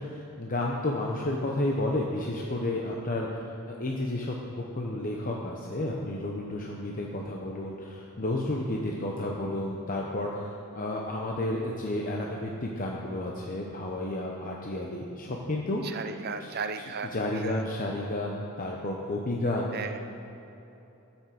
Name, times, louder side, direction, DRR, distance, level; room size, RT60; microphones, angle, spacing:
voice 1, 0.0-15.8 16.4-16.5 17.1-19.7, left 1 dB, 40° left, -1 dB, 0.9 m, -31 dB
voice 2, 15.8-17.6 19.7-20.0, right 5 dB, 45° right, 8 dB, 0.7 m, -36 dB
12.5 x 7.3 x 7.8 m, 3.0 s
head